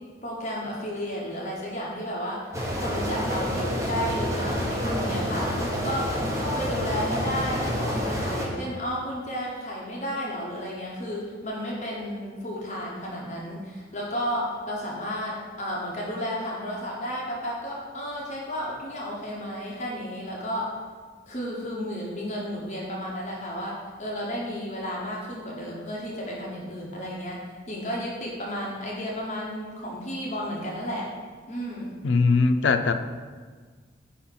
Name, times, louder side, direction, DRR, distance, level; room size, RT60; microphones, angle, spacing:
voice 1, 0.2-2.4 2.8-5.5 5.8-6.1 6.4-20.7 21.3-27.4 27.7-31.1 31.5-32.0, equal, 40° left, -4 dB, 1.1 m, -32 dB
sound 1, 2.5-8.5, equal, 15° right, 0.9 m, -28 dB
voice 2, 32.0-32.9, left 4 dB, 85° left, 8 dB, 0.4 m, -20 dB
5.4 x 4.3 x 5.5 m, 1.5 s
head